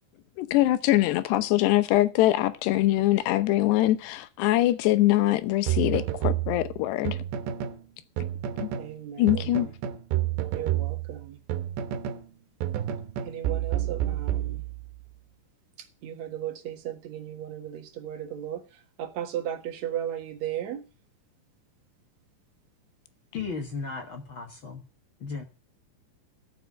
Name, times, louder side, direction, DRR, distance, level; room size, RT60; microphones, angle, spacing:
voice 1, 0.4-7.2 8.6-8.7 9.2-9.7, left 15 dB, 85° left, 3.0 m, -23 dB
sound 1, 5.7-7.8 8.2-8.9 9.3-12.3 12.6-15.0, right 12 dB, 90° right, 3.3 m, -30 dB
voice 2, 8.8-9.7 10.5-11.4 13.2-14.6 16.0-18.6 19.0-20.8, right 10 dB, 55° right, 2.3 m, -35 dB
voice 3, 23.3-24.8 25.2-25.4, left 4 dB, 60° left, 1.3 m, -35 dB
12.5 x 7.3 x 7.3 m
omnidirectional pair, 4.7 m